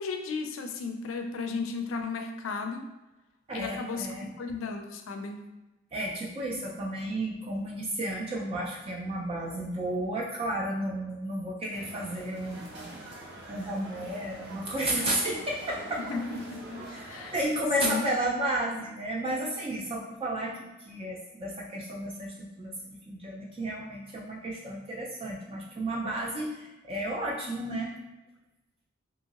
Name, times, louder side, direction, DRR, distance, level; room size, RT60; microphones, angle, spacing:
voice 1, 0.0-2.9 3.5-5.5 16.1-17.3 17.8-18.1, left 4 dB, 75° left, 5 dB, 0.4 m, -35 dB
voice 2, 3.5-4.3 5.9-12.9 13.5-16.0 16.8-17.0 17.3-28.0, right 1 dB, 30° right, -3 dB, 0.3 m, -32 dB
sound 1, 11.7-17.4, right 1 dB, 55° right, 0.7 m, -44 dB
2.8 x 2.7 x 2.8 m, 1.1 s
head